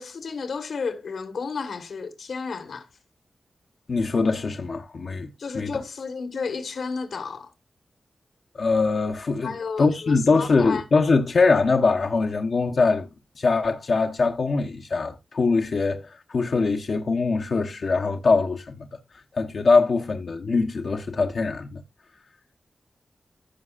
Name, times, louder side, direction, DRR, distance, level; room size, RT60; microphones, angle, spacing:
voice 1, 0.0-2.9 5.4-7.5 9.4-10.8, left 5 dB, 80° left, 1.4 m, -32 dB
voice 2, 3.9-5.3 5.5-5.8 8.5-13.1 13.4-18.9 19.1-21.8, left 4 dB, 55° left, 0.9 m, -22 dB
15.5 x 6.0 x 2.5 m
wide cardioid pair, 160°, 0 cm